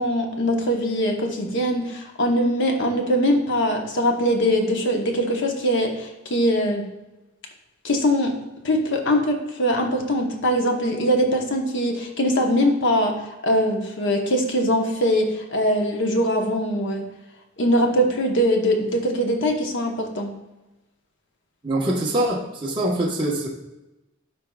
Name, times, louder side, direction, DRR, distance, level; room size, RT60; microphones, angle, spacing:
voice 1, 0.0-6.8 7.8-8.4 8.6-17.1 17.6-20.3, equal, 60° left, 3 dB, 1.1 m, -22 dB
voice 2, 21.6-23.5, right 1 dB, 25° right, -4 dB, 1.2 m, -24 dB
12.5 x 4.6 x 2.4 m, 1.0 s
head